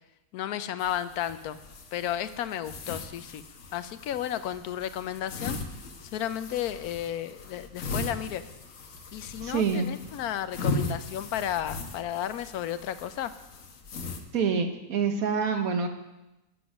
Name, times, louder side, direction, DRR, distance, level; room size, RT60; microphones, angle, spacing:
voice 1, 0.3-1.6 1.9-3.4 3.7-5.6 6.0-8.4 9.1-13.3, left 11 dB, 80° left, 12 dB, 1.1 m, -33 dB
sound 1, 0.8-14.2, left 3 dB, 60° left, 1.3 m, -38 dB
voice 2, 9.4-9.9 14.3-15.9, right 6 dB, 70° right, 6 dB, 1.4 m, -26 dB
10.0 x 7.9 x 6.0 m, 0.97 s
omnidirectional pair, 1.6 m